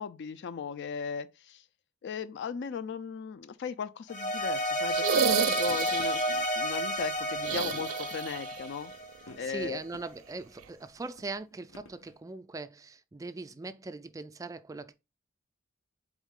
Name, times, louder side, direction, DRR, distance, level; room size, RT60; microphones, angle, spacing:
voice 1, 0.0-1.6 2.0-8.9 9.4-9.8, left 6 dB, 60° left, 0.4 m, -37 dB
sound 1, 4.1-9.4, equal, 40° left, 0.7 m, -31 dB
sound 2, 4.9-6.3 7.4-8.6 8.9-9.0 10.6-10.7, right 8 dB, 80° right, 0.4 m, -30 dB
sound 3, 5.3-5.4 5.7-6.1 7.0-7.1 7.5-7.9 9.2-10.0 10.5-10.6 11.2-12.2, left 1 dB, 90° left, 1.1 m, -49 dB
voice 2, 9.4-14.9, right 3 dB, 15° right, 0.3 m, -40 dB
4.0 x 3.6 x 3.5 m
head